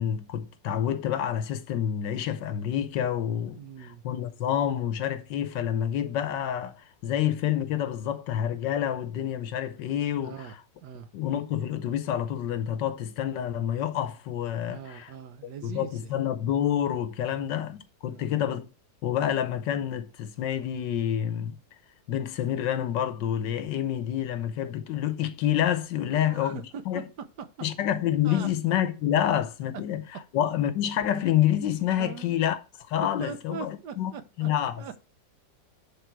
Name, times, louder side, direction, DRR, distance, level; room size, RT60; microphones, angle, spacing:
voice 1, 0.0-3.6 4.0-10.4 11.1-15.1 15.6-18.6 19.0-21.6 22.1-26.6 26.9-27.0 27.6-30.0 30.3-32.6 32.9-34.1 34.4-34.7, left 10 dB, 85° left, 1.5 m, -28 dB
voice 2, 3.5-4.0 10.2-11.1 14.7-16.2 17.3-17.5 18.0-18.3 26.1-27.0 28.2-28.5 32.0-32.4 33.0-34.5 34.8-34.9, right 7 dB, 70° right, 1.3 m, -41 dB
10.0 x 3.6 x 4.6 m
omnidirectional pair, 1.9 m